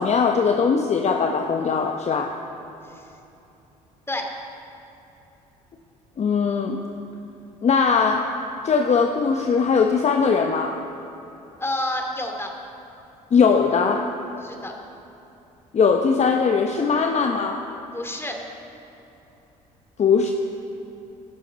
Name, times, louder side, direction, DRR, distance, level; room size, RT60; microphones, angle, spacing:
voice 1, 0.0-2.4 6.2-6.8 7.6-10.8 13.3-14.1 15.7-17.7 20.0-20.3, left 5 dB, 35° left, 4 dB, 1.0 m, -20 dB
voice 2, 11.6-12.5 14.4-14.7 17.9-18.4, left 1 dB, 15° left, 2 dB, 2.7 m, -29 dB
16.0 x 13.0 x 4.4 m, 3.0 s
hypercardioid pair, 55°, 19 cm